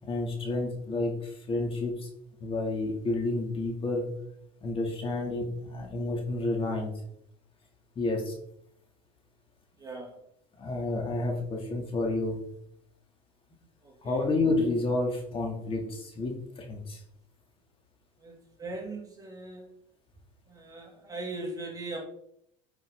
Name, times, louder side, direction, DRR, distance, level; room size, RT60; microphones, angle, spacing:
voice 1, 0.0-2.1 2.4-4.1 4.6-6.9 8.0-8.3 10.6-12.4 14.0-17.0, left 2 dB, 35° left, 1 dB, 2.7 m, -30 dB
voice 2, 9.8-10.2 13.8-14.2 18.2-18.3 18.6-19.7 20.5-22.0, right 2 dB, 20° right, 0 dB, 2.6 m, -39 dB
9.8 x 5.9 x 3.9 m, 0.73 s
supercardioid pair, 100°, 17 cm